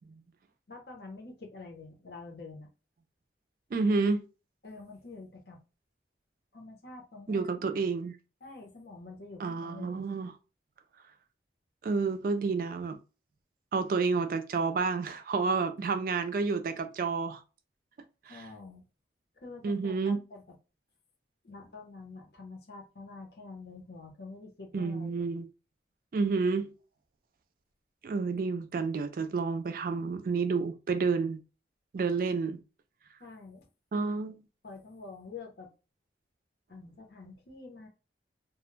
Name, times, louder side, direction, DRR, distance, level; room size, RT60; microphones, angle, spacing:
voice 1, 0.7-2.7 4.6-5.6 6.5-7.5 8.4-9.9 18.3-18.9 19.4-20.4 21.4-25.3 33.2-33.7 34.6-35.7 36.7-37.9, left 3 dB, 60° left, 0.8 m, -47 dB
voice 2, 3.7-4.2 7.3-8.2 9.4-10.3 11.8-13.0 13.7-17.4 18.3-18.5 19.6-20.2 24.7-25.5 26.1-26.7 28.0-31.4 31.9-32.6 33.9-34.4, right 4 dB, 50° right, 0.3 m, -30 dB
2.3 x 2.1 x 3.1 m
head